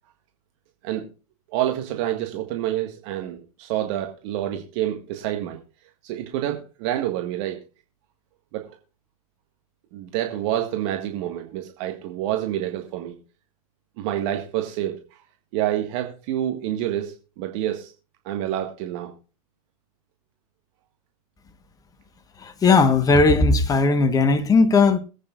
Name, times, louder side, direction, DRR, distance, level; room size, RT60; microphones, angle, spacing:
voice 1, 1.5-5.6 6.0-7.6 8.5-8.7 9.9-13.2 14.0-15.2 15.5-17.9 18.3-19.1, right 12 dB, 50° right, 1.7 m, -28 dB
voice 2, 22.4-25.0, left 3 dB, 20° left, 1.3 m, -17 dB
22.0 x 8.7 x 2.5 m
hypercardioid pair, 105°, 19 cm